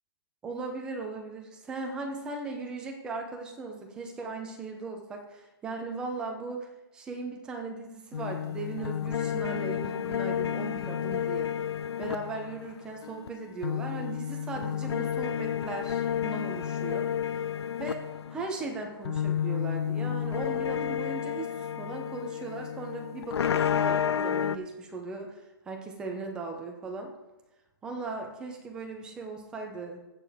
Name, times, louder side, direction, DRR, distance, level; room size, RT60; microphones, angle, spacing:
voice 1, 0.4-6.7 6.9-11.5 12.0-17.1 17.8-27.1 27.8-30.0, right 3 dB, 5° right, 2 dB, 0.6 m, -38 dB
sound 1, 8.1-13.3 13.6-24.6, left 9 dB, 80° left, 0.5 m, -31 dB
15.5 x 6.5 x 3.5 m, 1.0 s
hypercardioid pair, 175°, 13 cm